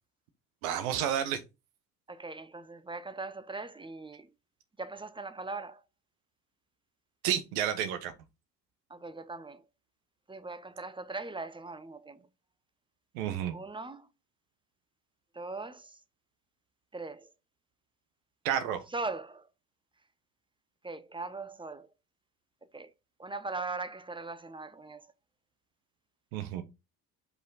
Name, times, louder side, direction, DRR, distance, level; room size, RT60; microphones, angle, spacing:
voice 1, 0.6-1.4 7.2-8.1 13.1-13.5 18.4-18.8 26.3-26.6, right 9 dB, 75° right, 1.3 m, -30 dB
voice 2, 2.1-4.3 4.8-5.8 8.9-9.6 10.3-12.3 13.5-14.1 15.3-16.0 16.9-17.3 18.9-19.5 20.8-21.9 22.7-22.9 23.2-25.1, right 3 dB, 10° right, 0.9 m, -40 dB
5.5 x 4.7 x 4.1 m
hypercardioid pair, 55°, 42 cm